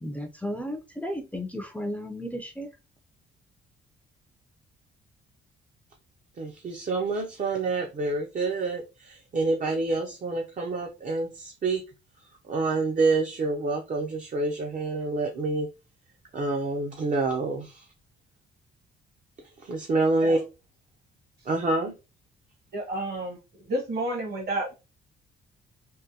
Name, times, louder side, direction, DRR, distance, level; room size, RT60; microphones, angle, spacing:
voice 1, 0.0-2.7, equal, 5° left, 0.5 m, -34 dB
voice 2, 6.4-11.8 12.4-15.7 16.3-17.9 19.6-20.4 21.5-21.9, right 3 dB, 40° right, 0.6 m, -27 dB
voice 3, 22.7-23.4 23.7-24.7, right 1 dB, 55° right, 1.4 m, -30 dB
3.5 x 2.2 x 2.7 m
cardioid pair, 90°, 20 cm